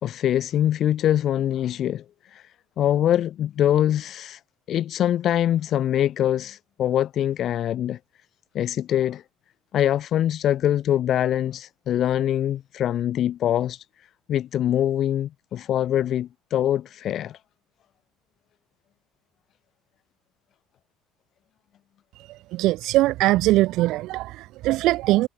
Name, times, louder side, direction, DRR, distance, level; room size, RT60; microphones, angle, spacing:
voice 1, 0.0-2.0 2.3-2.4 2.8-4.4 4.7-8.0 8.5-9.2 9.7-13.8 14.3-17.4, left 11 dB, 50° left, 4.0 m, -23 dB
voice 2, 22.5-25.3, right 17 dB, 70° right, 0.9 m, -21 dB
supercardioid pair, 105°, 0 cm